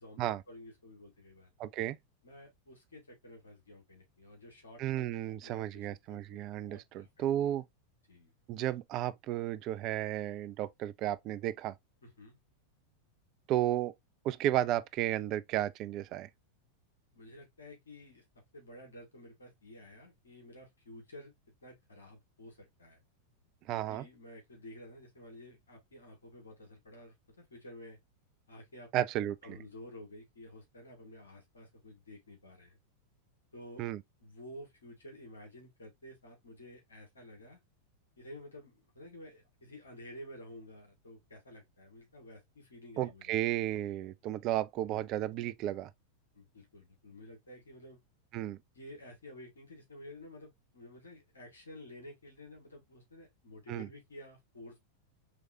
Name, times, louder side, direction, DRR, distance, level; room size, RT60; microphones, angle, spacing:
voice 1, 0.0-1.5 2.2-7.1 8.1-8.3 12.0-12.4 17.1-18.2 18.5-21.3 21.6-23.0 23.9-28.0 28.5-28.9 29.4-32.8 33.5-33.8 34.2-37.6 38.2-43.4 44.9-45.0 46.3-48.0 48.8-54.8, left 1 dB, 70° left, 1.9 m, -52 dB
voice 2, 1.6-2.0 4.8-7.6 8.5-11.7 13.5-13.9 14.2-16.3 23.7-24.0 28.9-29.6 33.8-34.0 43.0-45.9 48.3-48.6 53.7-53.9, right 13 dB, 40° right, 0.4 m, -33 dB
4.9 x 3.2 x 2.6 m
figure-of-eight pair, 90°, 0 cm